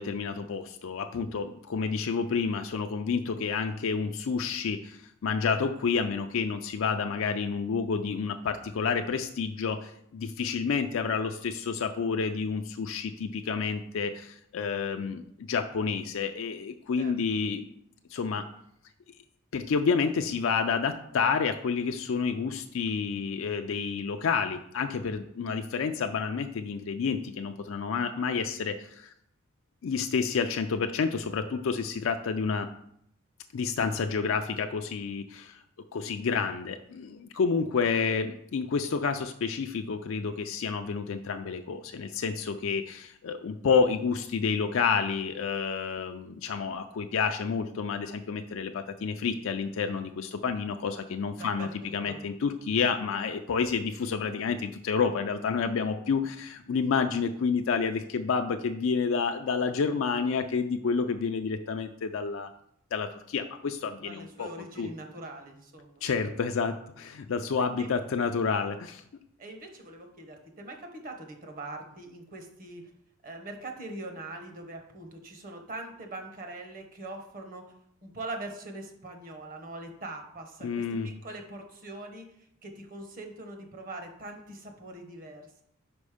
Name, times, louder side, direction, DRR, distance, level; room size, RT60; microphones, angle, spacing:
voice 1, 0.0-15.2 15.5-17.7 18.1-18.5 19.5-29.1 29.8-32.7 33.5-35.6 35.9-62.5 62.9-64.5 64.8-64.9 66.0-69.0 80.6-81.1, left 5 dB, 65° left, 6 dB, 0.4 m, -29 dB
voice 2, 51.4-52.2 64.0-66.0 67.8-67.9 69.4-72.9 73.2-77.7 78.0-82.3 82.6-85.6, right 2 dB, 40° right, 4 dB, 1.0 m, -42 dB
5.2 x 5.2 x 4.9 m, 0.72 s
head